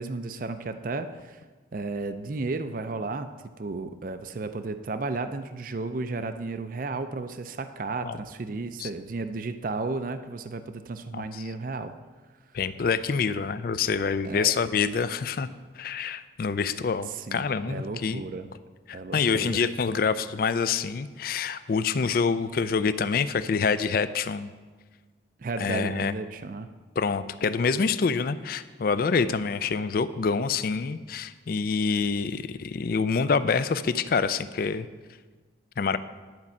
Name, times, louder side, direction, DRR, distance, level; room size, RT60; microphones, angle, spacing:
voice 1, 0.0-1.4 1.7-3.3 3.6-11.9 14.2-14.5 17.1-18.5 18.9-19.6 25.4-26.7, right 3 dB, 45° right, 10 dB, 0.4 m, -33 dB
voice 2, 11.1-11.4 12.5-15.5 15.7-18.2 18.9-24.5 25.6-26.1 27.0-34.9 35.8-36.0, left 5 dB, 50° left, 14 dB, 0.4 m, -26 dB
10.5 x 5.3 x 7.3 m, 1.4 s
head